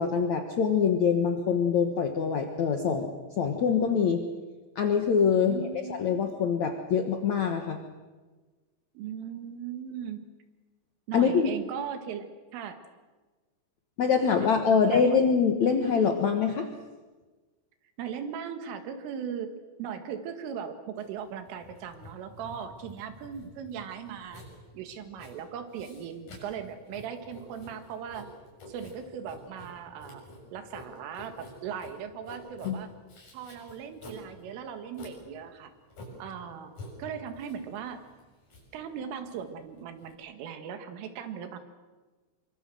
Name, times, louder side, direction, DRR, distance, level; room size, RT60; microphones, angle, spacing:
voice 1, 0.0-4.2 4.7-7.8 11.1-11.5 14.0-16.7 32.6-32.8, left 6 dB, 75° left, 5 dB, 1.6 m, -24 dB
voice 2, 5.4-6.0 9.0-10.3 11.1-12.8 14.4-14.5 14.7-15.2 18.0-19.5 19.8-24.4 24.7-28.3 28.7-30.2 30.5-32.9 33.3-35.7 36.2-36.7 37.0-38.0 38.7-41.6, right 8 dB, 90° right, 8 dB, 4.4 m, -38 dB
Writing, 21.0-40.1, left 1 dB, 40° left, 8.1 m, -49 dB
25.5 x 25.0 x 7.7 m, 1.3 s
omnidirectional pair, 5.6 m